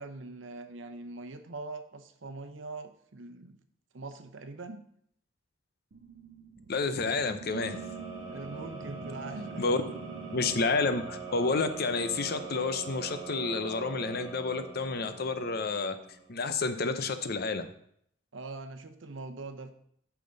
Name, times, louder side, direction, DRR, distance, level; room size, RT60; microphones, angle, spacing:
voice 1, 0.0-3.6 3.9-4.8 8.3-9.6 18.3-19.7, right 3 dB, 85° right, 9 dB, 0.8 m, -42 dB
sound 1, 5.9-13.7, right 6 dB, 55° right, 0.5 m, -47 dB
voice 2, 6.7-7.8 9.6-9.8 10.3-16.0 16.3-17.7, left 4 dB, 55° left, 10 dB, 0.7 m, -30 dB
sound 2, 7.5-16.4, right 4 dB, 30° right, 2.7 m, -43 dB
8.7 x 6.0 x 3.9 m, 0.67 s
head